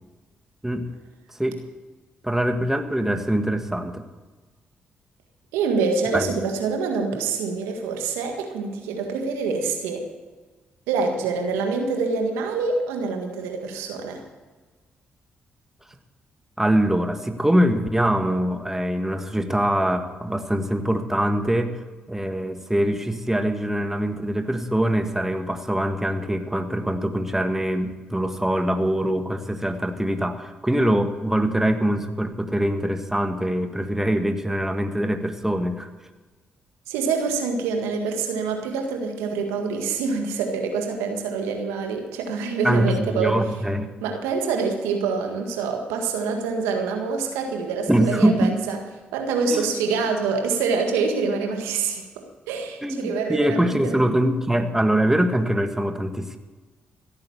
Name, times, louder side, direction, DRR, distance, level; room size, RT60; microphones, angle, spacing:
voice 1, 2.2-4.0 6.1-6.3 16.6-21.7 22.1-35.9 42.6-43.9 47.9-48.5 49.5-49.7 52.8-56.4, right 1 dB, 10° right, 7 dB, 1.7 m, -23 dB
voice 2, 5.5-10.1 10.9-14.2 36.9-43.4 44.0-48.8 49.1-54.0, right 4 dB, 85° right, 4 dB, 1.7 m, -26 dB
15.5 x 9.0 x 7.1 m, 1.3 s
hypercardioid pair, 45°, 4 cm